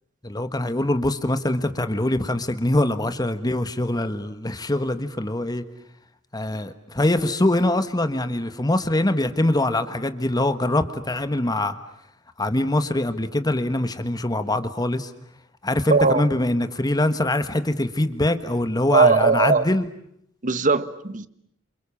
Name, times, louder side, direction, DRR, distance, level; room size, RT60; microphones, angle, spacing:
voice 1, 0.2-5.6 6.3-11.7 12.4-15.1 15.6-19.9, left 1 dB, 20° left, 1.4 m, -23 dB
voice 2, 15.9-16.2 18.9-19.6 20.4-21.3, right 4 dB, 40° right, 1.3 m, -19 dB
29.5 x 28.0 x 7.2 m
head